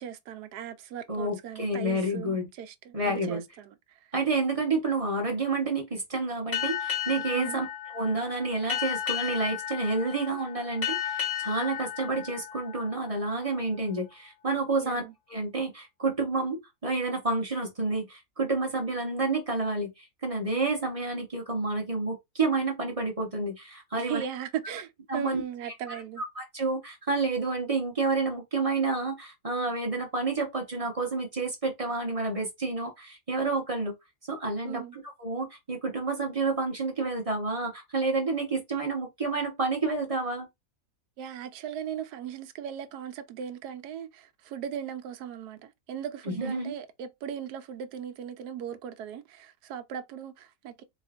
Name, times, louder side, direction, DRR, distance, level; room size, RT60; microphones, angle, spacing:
voice 1, 0.0-4.0 7.3-7.6 14.8-15.1 24.0-26.2 34.6-35.0 41.2-50.8, right 9 dB, 75° right, 1.2 m, -38 dB
voice 2, 1.1-2.5 2.9-3.4 4.1-7.7 7.9-15.0 15.3-24.2 25.1-25.4 25.9-26.0 26.3-33.9 34.3-40.5 46.3-46.7, right 3 dB, 25° right, 0.8 m, -29 dB
Boat Water vehicle, 6.5-13.6, left 10 dB, 30° left, 1.2 m, -34 dB
4.2 x 3.1 x 2.4 m
omnidirectional pair, 1.8 m